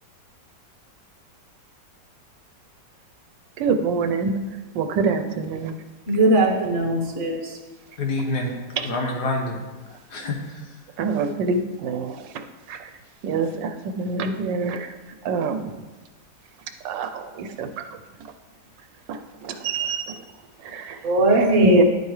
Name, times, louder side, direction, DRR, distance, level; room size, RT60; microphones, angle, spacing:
voice 1, 3.6-4.4 4.7-5.8 8.8-8.9 11.0-12.2 12.7-12.9 13.2-14.9 15.2-15.7 16.8-17.8 19.1-20.2 20.6-21.0 21.4-21.8, right 4 dB, 85° right, 7 dB, 1.4 m, -25 dB
voice 2, 6.1-7.5 21.0-21.8, right 1 dB, 50° right, 1 dB, 1.6 m, -19 dB
voice 3, 8.0-9.6 9.9-10.6, left 2 dB, 65° left, 1 dB, 1.7 m, -27 dB
10.5 x 8.2 x 3.2 m, 1.2 s
omnidirectional pair, 1.9 m